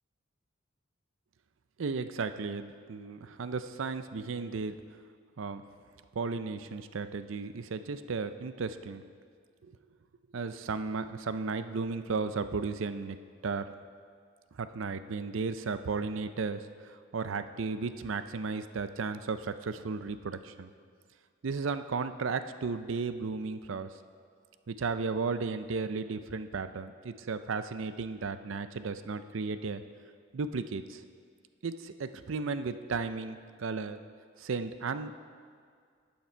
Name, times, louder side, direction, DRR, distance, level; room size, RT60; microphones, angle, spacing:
voice 1, 1.8-4.7 5.4-5.6 6.2-9.0 9.6-9.7 10.3-13.2 13.4-13.6 14.5-20.7 21.4-23.9 24.7-29.8 30.3-31.0 31.6-34.0 34.4-35.2, right 4 dB, 70° right, 11 dB, 0.5 m, -34 dB
12.5 x 8.6 x 4.5 m, 2.1 s
head